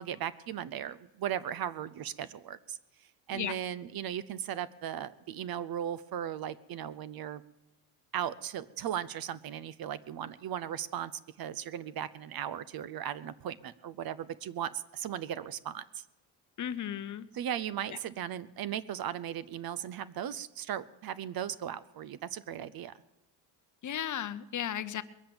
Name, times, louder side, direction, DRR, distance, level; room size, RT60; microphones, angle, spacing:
voice 1, 0.0-2.8 3.3-7.4 8.1-11.1 11.4-16.0 17.3-22.9, right 10 dB, 45° right, 18 dB, 0.7 m, -37 dB
voice 2, 16.6-17.3 17.9-18.0 23.8-25.0, left 10 dB, 35° left, 13 dB, 0.8 m, -35 dB
21.0 x 7.6 x 8.7 m, 0.97 s
supercardioid pair, 95°, 49 cm